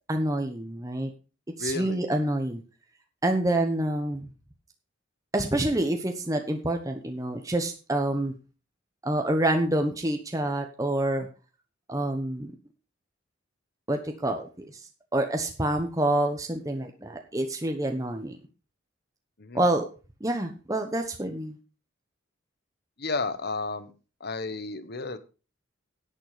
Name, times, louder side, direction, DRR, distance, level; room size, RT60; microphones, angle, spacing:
voice 1, 0.1-1.1 1.6-2.6 3.2-4.3 5.3-8.3 9.0-11.3 11.9-12.5 13.9-14.8 15.1-18.4 19.5-19.8 20.2-21.6, right 1 dB, 15° right, 4 dB, 1.1 m, -27 dB
voice 2, 1.6-2.1 19.4-19.6 23.0-23.9 24.2-25.2, left 3 dB, 55° left, 13 dB, 1.2 m, -32 dB
10.5 x 9.1 x 5.0 m, 0.34 s
head